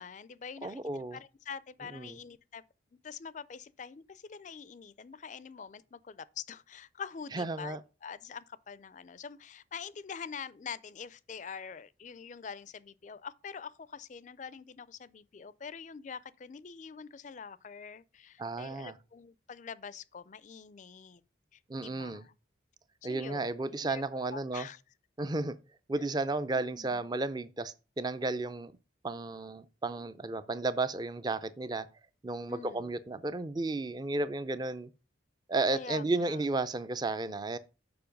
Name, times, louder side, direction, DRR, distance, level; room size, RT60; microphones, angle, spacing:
voice 1, 0.0-2.6 3.0-21.2 21.5-22.3 23.0-23.5 23.8-24.0 24.3-24.8 26.5-27.0 32.5-33.0 35.7-36.4, left 6 dB, 40° left, 0.4 m, -45 dB
voice 2, 0.6-1.2 1.9-2.2 7.3-7.8 18.4-18.9 21.7-22.2 23.0-24.7 25.2-25.6 25.9-28.7 29.0-31.9 32.2-34.9 35.5-37.6, right 2 dB, 20° right, 0.4 m, -33 dB
6.9 x 5.2 x 5.2 m
head